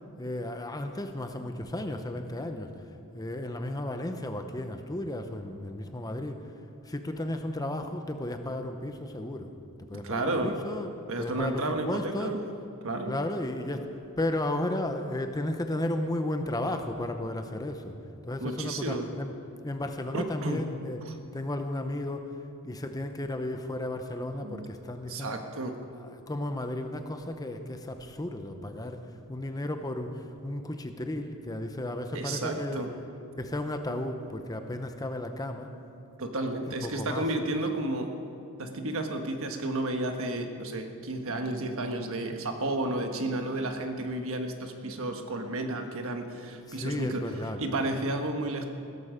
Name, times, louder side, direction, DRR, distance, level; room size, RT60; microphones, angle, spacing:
voice 1, 0.2-2.7 3.1-6.5 6.8-9.5 9.9-10.9 11.2-12.4 13.1-18.0 18.3-19.4 19.6-21.0 21.3-22.3 22.6-29.0 29.3-32.9 33.4-35.7 36.6-37.4 46.7-47.6, left 1 dB, 15° left, 6 dB, 0.8 m, -34 dB
voice 2, 9.9-10.6 11.1-12.4 12.8-13.2 18.4-19.1 20.1-20.6 24.4-24.7 25.1-25.8 32.1-32.9 36.2-38.1 38.6-47.2 47.6-48.7, right 2 dB, 65° right, 5 dB, 1.4 m, -32 dB
16.5 x 14.0 x 5.1 m, 2.6 s
head